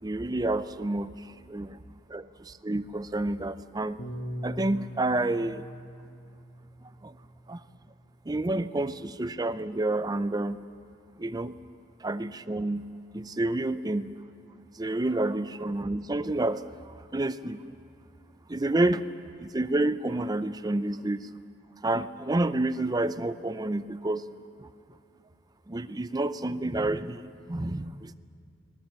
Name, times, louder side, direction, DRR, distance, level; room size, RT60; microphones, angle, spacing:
voice 1, 0.0-1.8 2.1-4.0 4.4-5.7 7.0-7.2 7.5-7.6 8.3-10.7 11.2-11.5 12.0-12.9 13.1-14.3 14.7-17.6 18.5-19.0 19.4-21.3 21.8-24.2 24.6-24.7 25.7-28.1, right 2 dB, 20° right, 13 dB, 0.5 m, -29 dB
Piano, 4.0-8.4, equal, 70° left, 1.9 m, -42 dB
19.5 x 19.0 x 8.8 m, 2.3 s
head